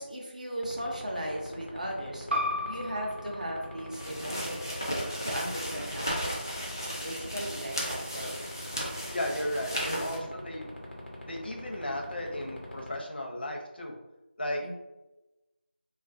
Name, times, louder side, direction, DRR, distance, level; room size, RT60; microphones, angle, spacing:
voice 1, 0.0-2.3 2.6-6.5 7.0-8.3 9.8-10.4 14.6-14.7, right 1 dB, 40° right, -1 dB, 0.5 m, -37 dB
sound 1, 0.6-12.9, left 1 dB, 80° left, 1.0 m, -41 dB
sound 2, 2.3-7.5, left 1 dB, 85° right, 0.6 m, -38 dB
sound 3, 3.9-10.2, equal, 20° left, 0.3 m, -35 dB
voice 2, 9.1-10.7 11.2-13.9 14.4-14.6, left 1 dB, 60° left, 0 dB, 0.6 m, -34 dB
2.4 x 2.3 x 2.5 m, 1.0 s
figure-of-eight pair, 175°, 6 cm